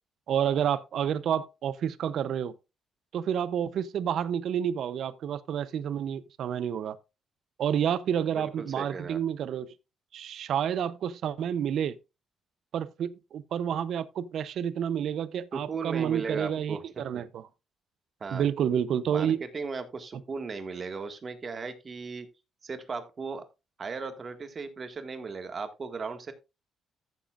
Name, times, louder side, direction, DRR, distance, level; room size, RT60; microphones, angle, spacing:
voice 1, 0.3-2.5 3.1-7.0 7.6-9.7 10.1-12.0 12.7-17.4 18.3-19.4, right 9 dB, 70° right, 0.6 m, -29 dB
voice 2, 8.3-9.2 15.5-17.0 18.2-18.5 19.1-22.3 22.6-23.4 23.8-26.3, right 4 dB, 40° right, 1.8 m, -37 dB
14.0 x 7.2 x 2.5 m
cardioid pair, 90°, 0 cm